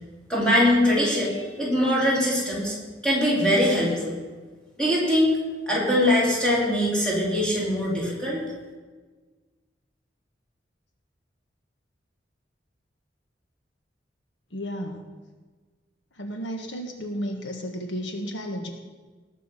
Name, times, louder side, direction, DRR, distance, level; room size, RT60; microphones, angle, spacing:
voice 1, 0.3-2.8 3.0-4.1 4.8-5.4 5.7-8.4, left 1 dB, 5° left, -6 dB, 4.1 m, -22 dB
voice 2, 14.5-15.1 16.2-18.7, equal, 80° left, 4 dB, 1.5 m, -33 dB
18.5 x 7.4 x 5.7 m, 1.4 s
head